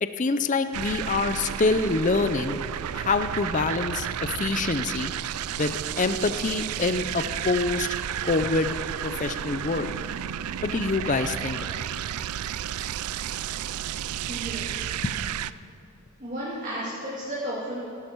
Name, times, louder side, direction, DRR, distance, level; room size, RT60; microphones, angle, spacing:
voice 1, 0.0-2.6 2.9-5.1 5.6-7.9 8.2-8.7 9.0-9.9 10.6-11.8, left 3 dB, 35° left, 10 dB, 0.5 m, -26 dB
sound 1, 0.7-15.5, right 10 dB, 80° right, 0.4 m, -32 dB
voice 2, 14.3-14.8 16.2-17.9, right 1 dB, 35° right, -7 dB, 2.4 m, -33 dB
16.5 x 12.5 x 4.6 m, 2.9 s
head